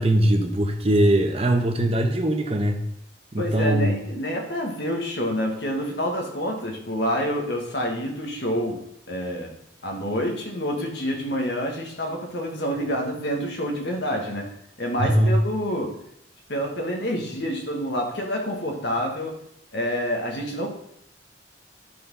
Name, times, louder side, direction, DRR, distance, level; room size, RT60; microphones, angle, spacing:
voice 1, 0.0-2.8 3.3-3.9 15.0-15.3, right 1 dB, 30° right, 4 dB, 1.0 m, -21 dB
voice 2, 3.4-8.8 9.1-9.5 9.8-14.5 14.8-15.9 16.5-19.4 19.7-20.7, equal, 60° left, 2 dB, 1.6 m, -27 dB
11.0 x 4.3 x 5.5 m, 0.75 s
head